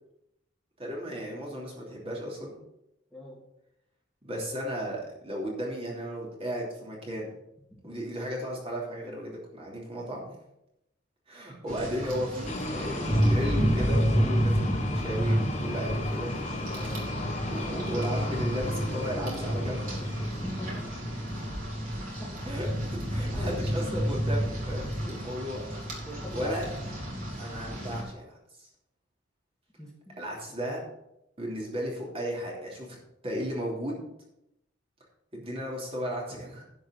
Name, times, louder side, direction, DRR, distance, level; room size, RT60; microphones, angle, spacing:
voice 1, 0.8-2.6 4.2-7.3 7.8-10.3 11.3-16.3 17.5-20.1 21.9-22.0 22.4-25.6 26.3-26.7 27.4-28.7 30.2-30.8 31.4-33.0 33.2-34.0 35.3-36.6, equal, 30° right, -3 dB, 3.0 m, -35 dB
Rain, 11.7-28.0, equal, 50° right, 3.7 m, -30 dB
sound 1, 12.5-21.8, left 2 dB, 40° left, 1.2 m, -36 dB
voice 2, 16.7-17.1 20.4-20.9 22.2-22.5 23.4-23.5 25.0-25.1 26.1-26.6 29.8-30.2, equal, 5° left, -4 dB, 2.5 m, -41 dB
11.0 x 5.4 x 7.0 m, 0.84 s
head